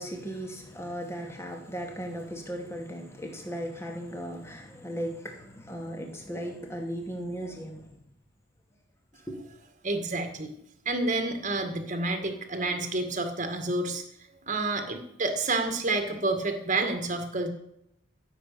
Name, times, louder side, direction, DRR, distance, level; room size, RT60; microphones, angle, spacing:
voice 1, 0.0-8.0 9.1-9.4, equal, 15° left, 2.5 m, -37 dB
voice 2, 9.8-10.5 10.9-14.0 14.5-17.5, right 2 dB, 35° right, 1.9 m, -29 dB
15.5 x 7.7 x 6.8 m
head